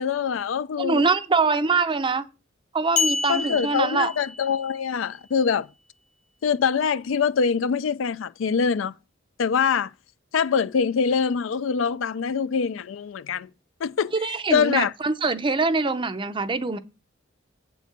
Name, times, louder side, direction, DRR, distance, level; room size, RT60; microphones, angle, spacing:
voice 1, 0.0-1.0 3.3-5.7 6.4-8.9 9.4-9.9 10.3-13.5 13.8-14.1 14.5-14.9, left 6 dB, 70° left, 0.4 m, -24 dB
voice 2, 0.8-2.2 2.7-4.1 14.1-16.8, right 4 dB, 25° right, 0.6 m, -24 dB
sound 1, 3.0-4.8, left 4 dB, 40° left, 0.9 m, -28 dB
8.1 x 4.6 x 6.7 m
head